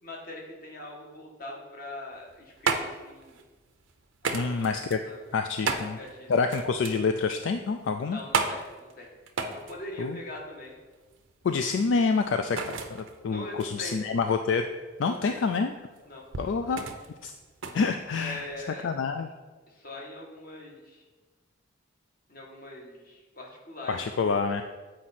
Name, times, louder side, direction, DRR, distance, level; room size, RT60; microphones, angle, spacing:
voice 1, 0.0-3.4 4.2-4.7 5.0-5.2 5.6-6.6 8.0-9.1 9.5-10.7 13.2-14.0 15.0-15.4 16.0-16.3 18.1-18.9 19.7-21.0 22.3-24.4, left 1 dB, 45° left, -1 dB, 1.4 m, -42 dB
sound 1, 2.1-18.7, right 4 dB, 90° right, 0.6 m, -35 dB
voice 2, 4.3-5.0 5.3-6.0 6.3-8.2 10.0-10.2 11.4-14.7 15.0-15.7 16.4-16.8 17.2-17.3 17.7-18.5 18.8-19.3 23.9-24.6, left 4 dB, 70° left, 7 dB, 0.4 m, -27 dB
7.7 x 4.8 x 4.2 m, 1.3 s
head